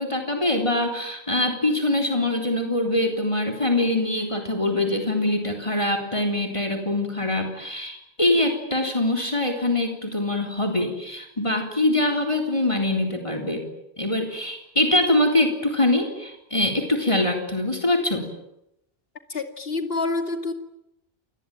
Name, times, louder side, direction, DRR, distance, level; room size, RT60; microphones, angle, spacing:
voice 1, 0.0-13.7 14.0-18.3, left 1 dB, 30° left, 3 dB, 3.8 m, -23 dB
voice 2, 19.3-20.5, left 3 dB, 65° left, 7 dB, 2.7 m, -27 dB
28.5 x 21.0 x 9.0 m, 0.82 s
omnidirectional pair, 1.1 m